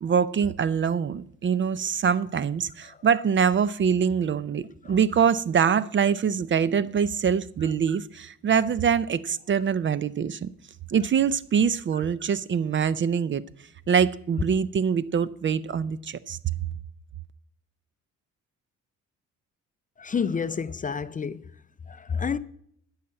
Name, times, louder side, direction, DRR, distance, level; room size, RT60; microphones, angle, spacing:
voice 1, 0.0-10.5 10.9-13.4 13.9-16.4, right 7 dB, 40° right, 0.5 m, -24 dB
voice 2, 20.0-21.4 21.9-22.4, left 6 dB, 25° left, 0.5 m, -29 dB
12.5 x 5.8 x 8.7 m
cardioid pair, 90°, 30 cm